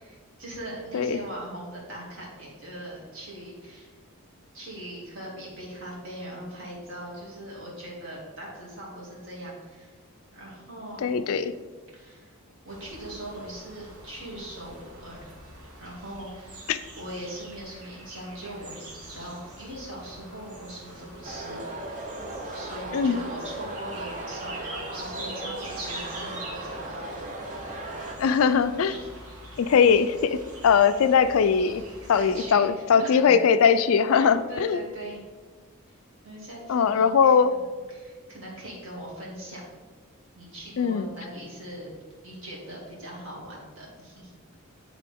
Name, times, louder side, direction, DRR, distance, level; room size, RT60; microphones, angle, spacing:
voice 1, 0.0-4.0 4.5-10.0 10.3-11.3 11.9-12.3 12.6-15.3 15.8-22.0 22.5-28.0 28.8-29.1 32.2-33.3 34.1-35.2 36.2-39.8 40.3-41.9 42.2-44.3, right 1 dB, 60° right, -5 dB, 2.3 m, -41 dB
voice 2, 11.0-11.5 16.7-16.8 22.9-23.2 28.2-28.9 29.6-30.4 30.6-31.8 32.1-34.8 36.7-37.5 40.8-41.1, left 6 dB, 70° left, 12 dB, 0.3 m, -20 dB
sound 1, 12.7-32.5, right 1 dB, 80° right, 1.6 m, -44 dB
sound 2, 21.2-28.1, right 2 dB, 35° right, 0.7 m, -37 dB
11.5 x 3.8 x 3.5 m, 1.4 s
head